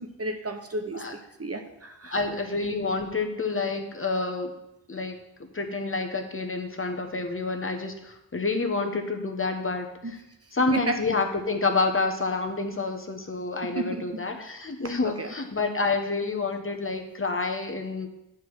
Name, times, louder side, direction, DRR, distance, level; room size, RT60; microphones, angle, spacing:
voice 1, 0.0-2.2 10.0-11.0 13.6-14.2 14.8-15.3, right 2 dB, 35° right, 5 dB, 1.0 m, -34 dB
voice 2, 2.1-4.5 4.9-5.2 5.5-9.9 10.5-18.1, left 3 dB, 30° left, 4 dB, 1.1 m, -28 dB
9.2 x 4.9 x 6.2 m, 0.88 s
cardioid pair, 75°, 43 cm